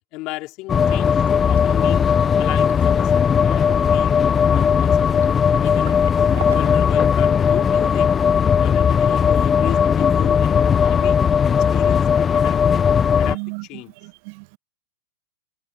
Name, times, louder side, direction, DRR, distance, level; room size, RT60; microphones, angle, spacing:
voice 1, 0.1-2.1 2.4-4.2 4.5-8.2 8.4-11.2 11.7-12.8 13.2-13.9, left 21 dB, 45° left, 3.3 m, -34 dB
sound 1, 0.7-13.4, left 7 dB, 20° left, 0.4 m, -17 dB
Liquid, 0.8-6.9, right 10 dB, 70° right, 3.8 m, -41 dB
voice 2, 13.2-13.6 14.0-14.6, right 37 dB, 50° right, 0.9 m, -34 dB
hypercardioid pair, 105°, 0 cm